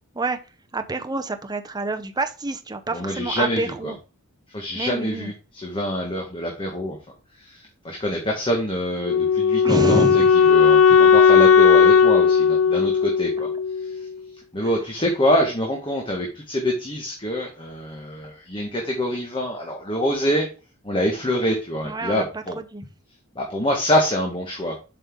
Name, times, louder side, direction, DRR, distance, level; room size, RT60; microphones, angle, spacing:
voice 1, 0.7-3.9 4.7-5.3 9.6-10.3 10.9-11.0 14.6-14.7 15.4-15.5 21.8-22.8, right 2 dB, 20° right, 7 dB, 0.7 m, -27 dB
voice 2, 2.9-3.9 4.5-7.0 7.4-13.5 13.8-13.9 14.5-20.5 20.8-22.6 23.3-24.8, equal, 25° left, 1 dB, 1.4 m, -25 dB
Wind instrument woodwind instrument, 9.1-14.1, left 6 dB, 75° left, 0.6 m, -16 dB
7.6 x 5.3 x 3.6 m, 0.33 s
head